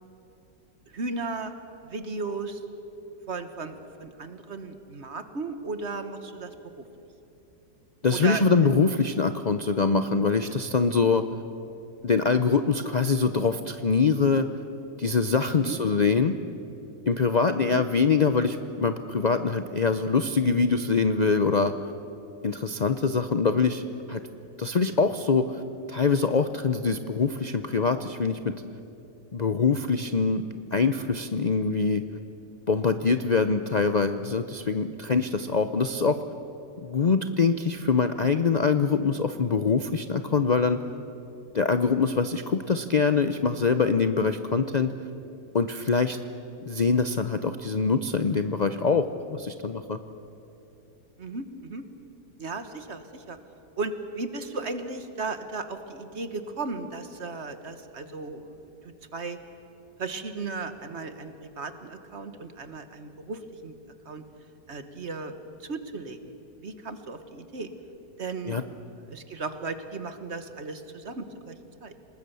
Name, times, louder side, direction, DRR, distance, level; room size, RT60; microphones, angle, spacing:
voice 1, 0.9-1.5 1.8-2.6 3.3-6.5 6.8-6.9 8.1-8.4 10.9-11.1 15.6-15.8 17.7-17.8 51.2-51.8 52.4-53.4 53.8-58.5 58.8-59.4 60.0-63.7 64.1-64.2 64.7-65.3 65.6-66.3 66.6-67.7 68.2-68.6 69.1-71.5 71.8-71.9, right 3 dB, 45° right, 9 dB, 1.5 m, -35 dB
voice 2, 8.0-11.2 12.0-14.5 15.0-16.3 17.1-21.7 22.4-24.2 24.6-25.6 25.9-28.5 29.3-30.4 30.7-32.0 32.7-36.2 36.8-40.8 41.5-44.9 45.5-46.2 46.7-50.0 68.4-68.6, left 4 dB, 75° left, 9 dB, 0.4 m, -24 dB
27.5 x 19.5 x 6.9 m, 3.0 s
omnidirectional pair, 1.8 m